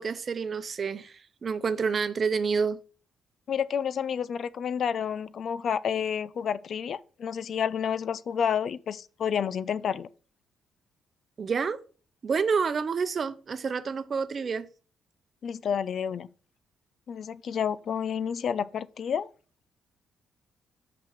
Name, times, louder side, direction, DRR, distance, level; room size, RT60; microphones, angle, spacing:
voice 1, 0.0-2.8 11.4-11.8 12.2-14.7, right 5 dB, 45° right, 0.7 m, -28 dB
voice 2, 3.5-10.1 15.4-16.3 17.1-19.3, left 7 dB, 60° left, 0.5 m, -30 dB
6.1 x 5.8 x 6.1 m
cardioid pair, 90°, 0 cm